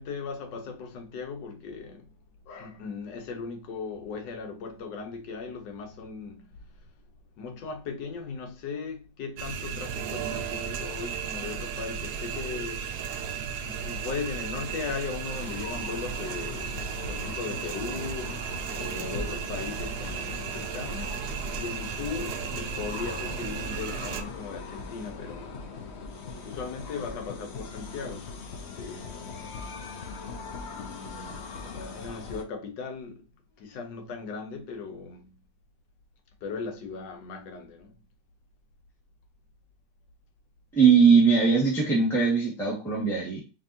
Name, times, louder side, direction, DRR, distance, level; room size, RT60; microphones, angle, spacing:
voice 1, 0.0-2.1 2.5-6.6 7.4-12.9 13.6-21.2 21.5-25.5 26.4-29.5 30.7-33.3 33.6-35.3 36.4-38.0, left 5 dB, 80° left, 1.5 m, -38 dB
sound 1, 9.4-24.2, right 7 dB, 70° right, 1.0 m, -35 dB
sound 2, 15.3-32.4, left 4 dB, 60° left, 0.7 m, -40 dB
voice 2, 40.7-43.4, right 5 dB, ahead, 1.4 m, -20 dB
5.2 x 2.7 x 2.7 m
omnidirectional pair, 1.9 m